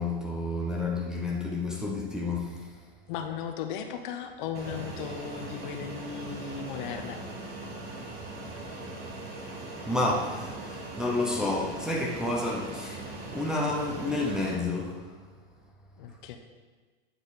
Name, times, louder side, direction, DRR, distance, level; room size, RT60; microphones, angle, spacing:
voice 1, 0.0-2.7 9.8-15.1, left 2 dB, ahead, -3 dB, 0.7 m, -30 dB
voice 2, 3.1-7.2 16.0-16.4, left 7 dB, 50° left, 6 dB, 0.9 m, -36 dB
Fixed-wing aircraft airplane, 4.5-14.5, right 2 dB, 30° right, 1.5 m, -40 dB
9.4 x 4.9 x 4.0 m, 1.4 s
hypercardioid pair, 130°, 32 cm